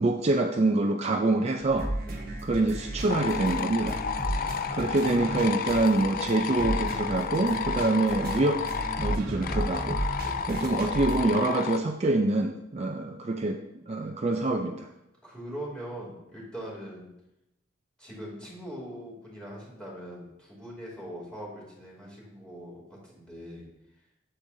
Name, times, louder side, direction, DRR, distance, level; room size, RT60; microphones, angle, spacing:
voice 1, 0.0-1.9 2.4-4.0 4.7-8.6 9.0-10.0 10.5-13.6 13.9-14.9, right 2 dB, 35° right, 3 dB, 0.4 m, -26 dB
sound 1, 1.6-11.3, right 1 dB, 50° right, 1.2 m, -34 dB
sound 2, 3.1-11.8, left 7 dB, 50° left, 0.3 m, -32 dB
voice 2, 4.2-4.7 10.2-10.4 15.2-17.1 18.0-23.6, equal, 5° left, -5 dB, 2.7 m, -42 dB
8.4 x 7.8 x 2.7 m, 0.88 s
head